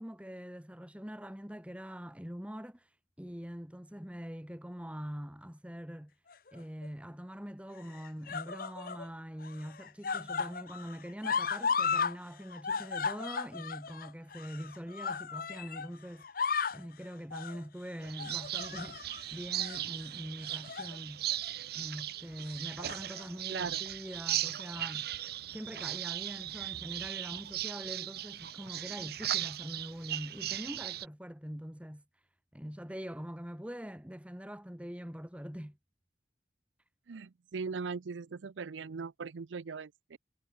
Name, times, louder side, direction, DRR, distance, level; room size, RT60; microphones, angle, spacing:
voice 1, 0.0-2.9 3.2-6.1 6.5-16.4 16.7-21.3 21.7-25.1 25.5-32.0 32.5-35.8, equal, 5° right, 1.8 m, -43 dB
sound 1, 6.3-6.9 7.8-9.1 9.4-12.2 12.4-15.9 16.2-16.9 17.3-17.6 18.2-19.2 19.6-19.8 20.5-21.0 21.3-21.5 22.6-23.3 24.1-24.2, left 5 dB, 50° left, 0.9 m, -35 dB
sound 2, 18.0-31.1, right 12 dB, 55° right, 1.0 m, -38 dB
voice 2, 23.5-23.8 37.1-40.2, right 5 dB, 85° right, 0.5 m, -39 dB
head